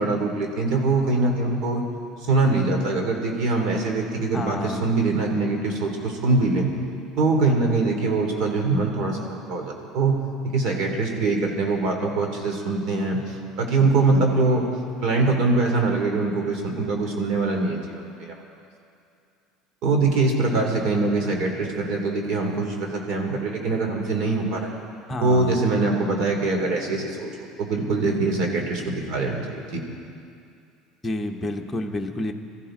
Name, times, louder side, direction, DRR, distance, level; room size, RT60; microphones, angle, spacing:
voice 1, 0.0-1.8 2.2-6.7 7.2-10.1 10.4-14.6 15.0-18.4 19.8-24.7 25.2-29.8, right 3 dB, 65° right, 2 dB, 2.8 m, -23 dB
voice 2, 4.3-4.9 25.1-25.6 31.0-32.3, left 1 dB, 15° left, 2 dB, 1.1 m, -29 dB
22.0 x 14.5 x 3.8 m, 2.4 s
cardioid pair, 125°, 0 cm